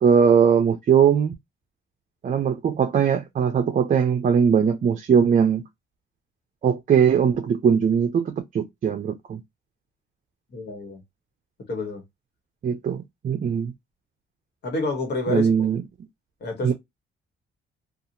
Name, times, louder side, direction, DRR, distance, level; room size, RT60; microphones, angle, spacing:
voice 1, 0.0-1.3 2.2-5.6 6.6-9.4 12.6-13.7 15.3-15.8 16.6-16.7, right 7 dB, 40° right, 0.5 m, -20 dB
voice 2, 10.5-11.0 11.7-12.0 14.6-15.7 16.4-16.7, left 3 dB, 60° left, 1.4 m, -29 dB
2.8 x 2.4 x 2.5 m
cardioid pair, 90°, 20 cm